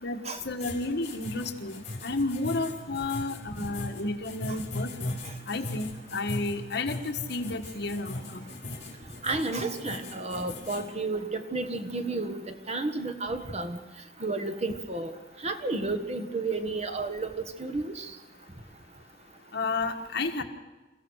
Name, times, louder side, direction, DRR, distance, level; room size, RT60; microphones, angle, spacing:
voice 1, 0.4-5.2 5.5-8.5 19.5-20.4, left 2 dB, 65° left, 4 dB, 1.6 m, -32 dB
sound 1, 0.6-10.8, left 2 dB, 40° left, 4.7 m, -38 dB
voice 2, 9.2-12.4 12.7-13.8 14.2-15.1 15.4-17.3 17.6-17.9, right 3 dB, 35° right, 8 dB, 1.5 m, -31 dB
28.0 x 15.5 x 6.5 m, 1.1 s
head